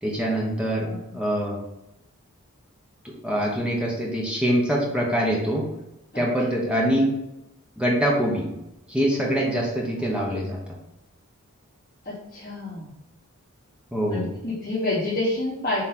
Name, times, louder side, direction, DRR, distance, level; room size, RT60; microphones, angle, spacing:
voice 1, 0.0-0.9 1.1-1.6 3.0-5.7 6.1-7.2 7.8-8.5 8.9-10.6 13.9-14.3, equal, 5° right, -2 dB, 1.0 m, -24 dB
voice 2, 12.0-12.9 14.1-15.8, left 2 dB, 40° left, -12 dB, 2.9 m, -28 dB
7.4 x 3.3 x 6.0 m, 0.88 s
head